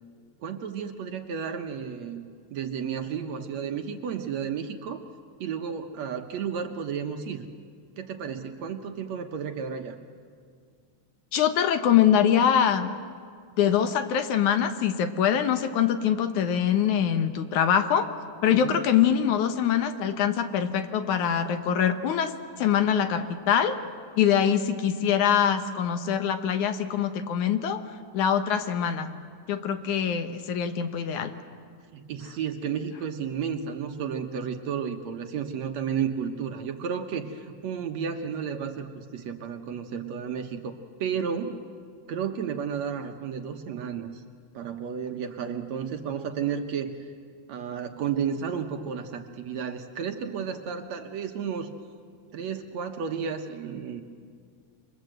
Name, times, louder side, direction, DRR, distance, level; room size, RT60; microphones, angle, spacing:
voice 1, 0.4-2.2 2.5-5.0 5.4-7.5 8.0-10.0 18.5-18.8 31.9-41.6 42.1-44.2 44.5-46.9 47.5-51.7 52.3-54.0, right 7 dB, 65° right, 5 dB, 2.2 m, -32 dB
voice 2, 11.3-12.9 13.6-18.1 18.4-23.8 24.2-27.8 28.1-29.1 29.5-31.3, left 9 dB, 70° left, 9 dB, 2.4 m, -24 dB
28.0 x 24.5 x 7.9 m, 2.1 s
omnidirectional pair, 3.8 m